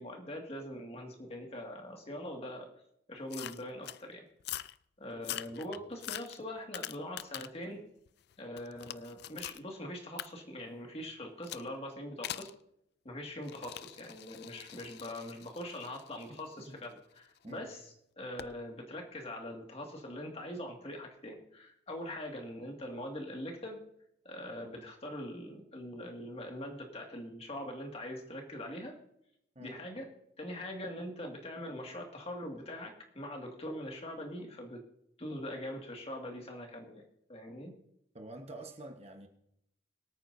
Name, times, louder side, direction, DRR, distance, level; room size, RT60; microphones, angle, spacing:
voice 1, 0.0-2.7 3.1-4.2 5.0-7.8 8.4-12.5 13.0-23.8 24.2-29.0 29.6-30.1 30.4-34.8 35.2-37.0 37.3-37.7, left 1 dB, 35° left, 2 dB, 2.1 m, -42 dB
sound 1, 3.3-4.0 4.4-4.8 5.2-7.6 8.1-9.6 10.2-10.3 11.4-11.7 12.2-12.5 13.4-17.4 18.4-18.6, left 12 dB, 60° left, 0.4 m, -43 dB
voice 2, 5.3-5.8 16.3-16.4 16.7-16.8 17.4-17.7 29.5-29.8 38.1-39.3, right 1 dB, 35° right, 4 dB, 1.2 m, -48 dB
24.0 x 9.0 x 2.7 m, 0.75 s
head